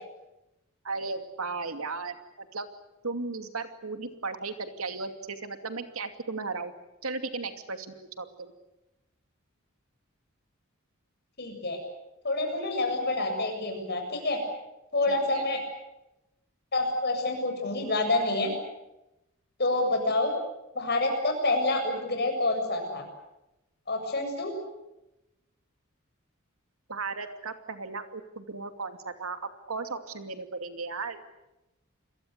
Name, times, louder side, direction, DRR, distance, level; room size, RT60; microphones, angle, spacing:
voice 1, 0.8-2.7 3.0-6.7 7.0-8.5 15.1-15.5 26.9-31.2, right 4 dB, 90° right, 8 dB, 2.6 m, -36 dB
voice 2, 11.4-11.8 12.2-14.4 14.9-15.6 16.7-18.5 19.6-20.3 20.7-23.0 23.9-24.5, left 2 dB, 50° left, 4 dB, 7.5 m, -27 dB
28.5 x 22.5 x 8.2 m, 0.93 s
head